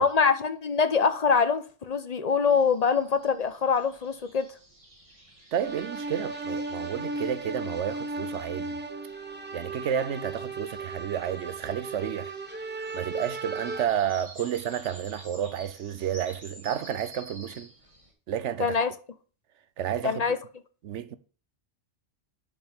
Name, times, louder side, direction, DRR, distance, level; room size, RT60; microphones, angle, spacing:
voice 1, 0.0-4.5 18.6-18.9 20.0-20.4, left 5 dB, 40° left, 0.8 m, -24 dB
sound 1, 2.5-18.1, equal, 25° right, 2.4 m, -51 dB
voice 2, 5.5-8.8 9.5-12.3 12.9-17.7 18.3-18.7 19.8-20.2 20.8-21.2, right 9 dB, 70° right, 1.0 m, -31 dB
sound 2, 5.6-13.8, right 3 dB, 10° right, 0.8 m, -36 dB
10.5 x 5.2 x 3.5 m
omnidirectional pair, 1.3 m